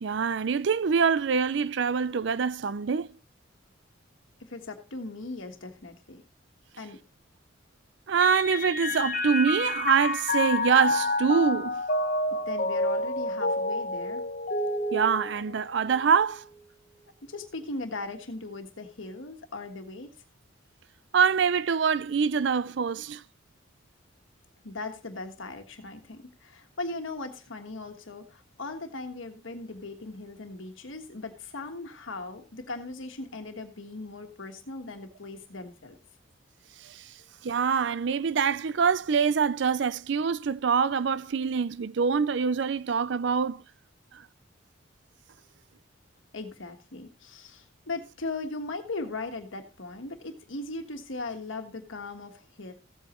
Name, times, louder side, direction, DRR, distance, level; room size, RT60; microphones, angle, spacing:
voice 1, 0.0-3.1 8.1-11.8 14.9-16.4 21.1-23.2 36.8-37.1 37.4-43.6 44.1-44.3, right 6 dB, 60° right, 0.4 m, -25 dB
voice 2, 4.4-6.2 6.8-7.0 12.3-14.2 17.2-20.1 24.6-36.0 46.3-52.7, left 3 dB, 75° left, 1.4 m, -38 dB
Mallet percussion, 8.2-15.9, left 2 dB, 40° left, 1.0 m, -29 dB
15.0 x 8.3 x 3.0 m
head